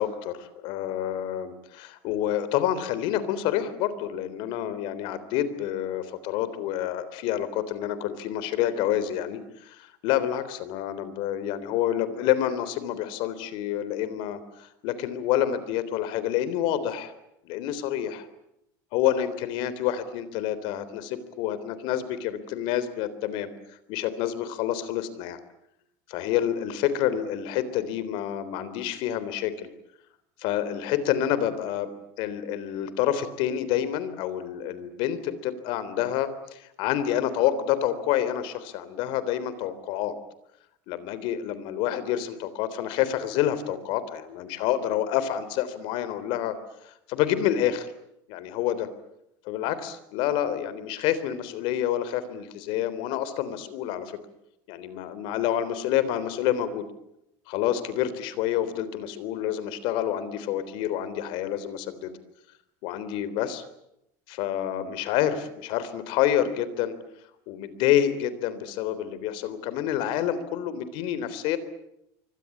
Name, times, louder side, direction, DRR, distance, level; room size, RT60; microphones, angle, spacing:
voice 1, 0.0-17.1 17.5-18.3 18.9-23.5 23.9-25.4 26.1-29.7 30.4-31.9 32.2-40.1 40.9-46.6 46.8-47.9 48.3-48.9 49.5-54.1 54.7-56.8 57.5-62.1 62.8-63.6 64.3-67.0 67.5-71.6, left 11 dB, 65° left, 14 dB, 3.5 m, -28 dB
26.5 x 24.0 x 8.6 m, 0.82 s
cardioid pair, 155°, 9 cm